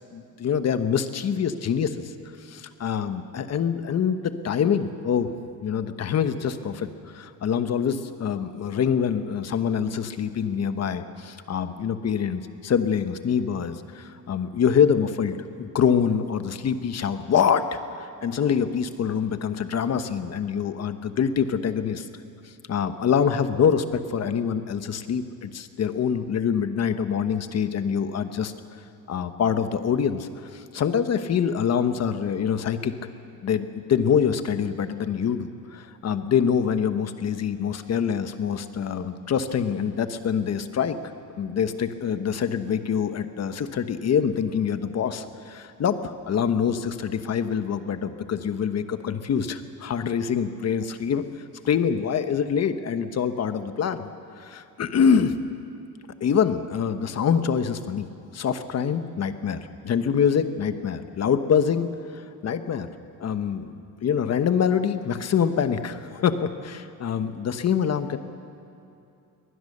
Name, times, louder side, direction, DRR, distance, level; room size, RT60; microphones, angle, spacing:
voice 1, 0.1-2.1 2.5-5.3 5.6-6.9 7.1-22.1 22.7-28.5 29.1-32.9 33.4-41.0 41.4-51.2 51.6-54.1 54.4-55.4 56.2-58.1 58.3-62.9 63.2-68.2, left 7 dB, 45° left, 10 dB, 1.2 m, -25 dB
23.0 x 19.5 x 6.7 m, 2.7 s
cardioid pair, 135°, 36 cm